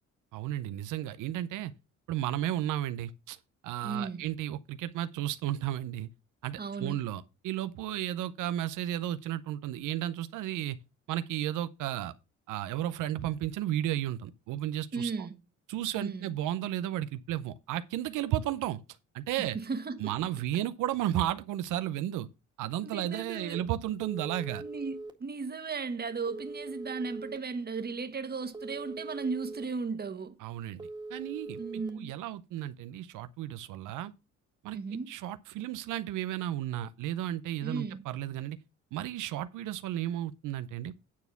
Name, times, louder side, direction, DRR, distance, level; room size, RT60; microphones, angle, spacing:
voice 1, 0.3-1.7 2.1-3.4 3.6-6.1 6.4-10.8 11.1-12.1 12.5-15.3 15.7-18.8 19.1-19.6 20.0-22.3 22.6-24.6 30.4-34.1 34.6-34.8 35.1-38.6 38.9-40.9, right 12 dB, 85° right, 0.6 m, -33 dB
voice 2, 3.8-4.2 6.6-7.0 14.9-15.4 15.9-16.4 19.4-20.1 22.8-23.7 24.6-30.3 31.6-32.1 34.7-35.1 37.6-38.0, right 4 dB, 30° right, 1.4 m, -36 dB
Telephone, 24.0-25.1 26.3-27.4 28.5-29.6 30.8-31.9, right 2 dB, 15° right, 1.7 m, -41 dB
9.6 x 4.2 x 6.8 m
cardioid pair, 90°, 30 cm